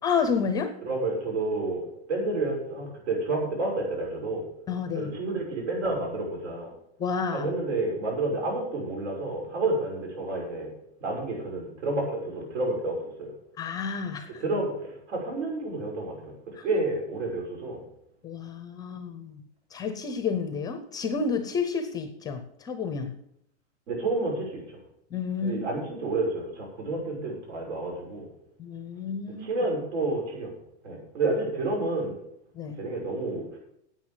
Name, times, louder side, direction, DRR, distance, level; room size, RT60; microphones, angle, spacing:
voice 1, 0.0-0.7 4.7-5.1 7.0-7.5 13.6-14.4 16.6-16.7 18.2-19.4 19.7-23.1 25.1-25.6 28.6-29.5 32.5-32.8, left 5 dB, 10° left, 9 dB, 0.5 m, -30 dB
voice 2, 0.8-4.5 4.9-6.7 7.3-10.7 11.0-13.3 14.4-17.8 23.9-24.8 25.4-28.3 29.4-30.5 30.8-32.2 32.8-33.6, right 2 dB, 85° right, 0 dB, 6.1 m, -30 dB
9.6 x 8.6 x 7.4 m, 0.75 s
supercardioid pair, 165°, 34 cm